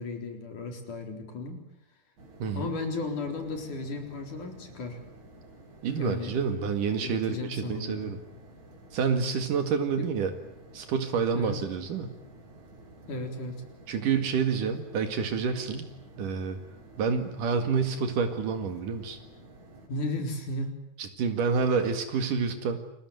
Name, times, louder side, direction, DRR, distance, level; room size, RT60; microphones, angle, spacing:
voice 1, 0.0-1.6 2.5-5.0 6.0-6.4 7.0-8.2 10.0-10.1 11.3-11.6 13.1-13.6 19.9-20.8, left 2 dB, 70° left, 5 dB, 5.5 m, -34 dB
sound 1, 2.2-19.9, right 1 dB, 60° right, 6.0 m, -52 dB
voice 2, 5.8-8.2 8.9-10.3 10.7-12.1 13.9-15.9 16.2-16.6 17.0-19.2 21.0-22.8, right 6 dB, 75° right, 8 dB, 3.6 m, -28 dB
29.0 x 21.5 x 9.4 m, 0.77 s
omnidirectional pair, 3.7 m